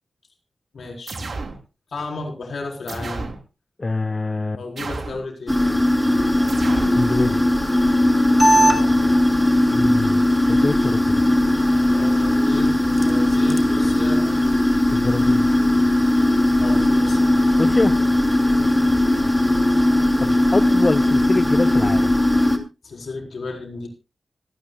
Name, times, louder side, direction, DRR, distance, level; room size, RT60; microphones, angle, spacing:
voice 1, 0.7-1.2 1.9-3.3 4.6-5.6 8.5-8.9 11.9-14.6 16.6-17.3 22.8-23.9, left 3 dB, 80° left, 4.4 m, -33 dB
sound 1, 1.1-1.6 2.9-3.4 4.8-5.3 6.5-7.0, right 3 dB, 65° right, 3.2 m, -31 dB
voice 2, 3.8-4.6 6.9-7.4 9.7-11.2 14.9-15.5 17.6-18.0 20.2-22.2, left 3 dB, 40° left, 0.7 m, -24 dB
sound 2, 5.5-22.6, left 1 dB, 5° left, 2.6 m, -18 dB
26.0 x 9.6 x 2.3 m
cardioid pair, 55°, 0 cm